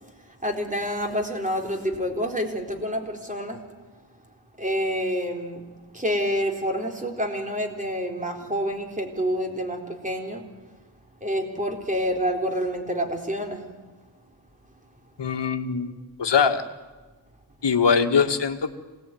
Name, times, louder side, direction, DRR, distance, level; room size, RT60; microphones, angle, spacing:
voice 1, 0.4-3.6 4.6-5.6 5.9-10.4 11.2-13.6, equal, 15° right, 2 dB, 4.2 m, -28 dB
voice 2, 15.2-15.9 16.2-16.6 17.6-18.8, left 6 dB, 65° left, 6 dB, 2.1 m, -22 dB
26.5 x 19.0 x 9.4 m, 1.3 s
wide cardioid pair, 85°, 45 cm